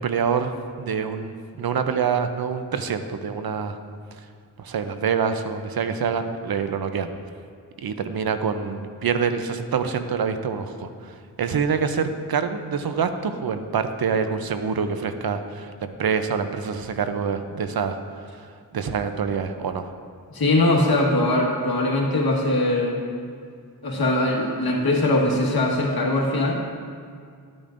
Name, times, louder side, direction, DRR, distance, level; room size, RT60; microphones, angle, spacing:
voice 1, 0.0-3.8 4.6-7.1 7.8-18.0 18.3-18.5 18.7-19.9, right 6 dB, 70° right, 9 dB, 0.6 m, -26 dB
voice 2, 20.3-23.0 23.8-26.6, left 1 dB, 75° left, -2 dB, 1.5 m, -21 dB
11.5 x 8.7 x 2.5 m, 2.2 s
wide cardioid pair, 80°, 37 cm